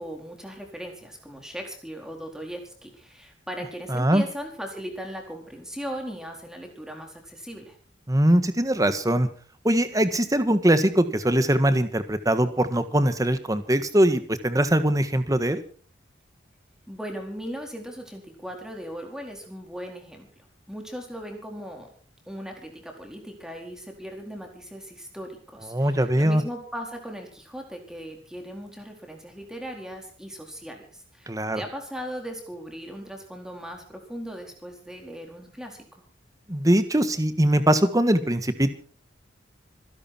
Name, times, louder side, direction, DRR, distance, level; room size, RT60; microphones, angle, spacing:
voice 1, 0.0-7.8 16.9-20.3 20.7-21.9 22.3-36.0, equal, 5° right, 2 dB, 4.3 m, -38 dB
voice 2, 3.9-4.2 8.1-9.3 9.6-15.6 25.7-26.4 31.3-31.6 36.5-38.7, right 1 dB, 20° right, 10 dB, 1.5 m, -22 dB
26.0 x 11.5 x 4.5 m, 0.42 s
head